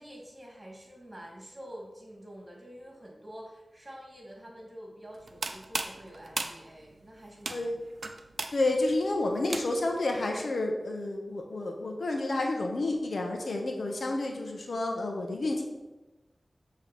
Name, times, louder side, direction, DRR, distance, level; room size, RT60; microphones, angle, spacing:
voice 1, 0.0-7.7, equal, 25° right, -1 dB, 2.0 m, -47 dB
sound 1, 5.1-10.0, right 3 dB, 75° right, 0.5 m, -37 dB
voice 2, 8.5-15.6, left 2 dB, 80° left, 2 dB, 0.9 m, -30 dB
7.2 x 3.2 x 5.8 m, 1.1 s
wide cardioid pair, 70°, 0 cm